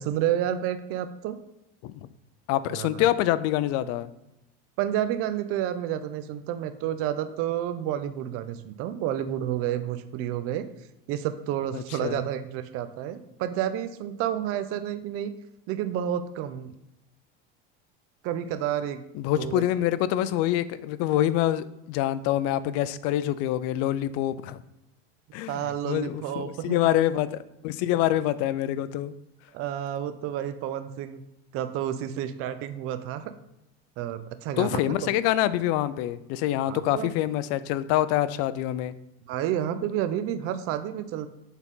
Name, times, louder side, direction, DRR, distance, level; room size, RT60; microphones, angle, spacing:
voice 1, 0.0-1.4 2.7-3.0 4.8-10.7 11.1-15.3 15.7-16.7 18.2-19.0 19.4-19.6 25.5-26.8 29.5-31.2 31.5-33.3 34.0-35.1 36.7-37.1 39.3-41.3, right 11 dB, 50° right, 10 dB, 0.6 m, -30 dB
voice 2, 2.5-4.1 11.7-12.2 19.1-24.6 25.3-29.1 34.6-38.9, left 13 dB, 55° left, 15 dB, 0.4 m, -26 dB
7.1 x 4.0 x 3.6 m, 0.87 s
supercardioid pair, 135°, 29 cm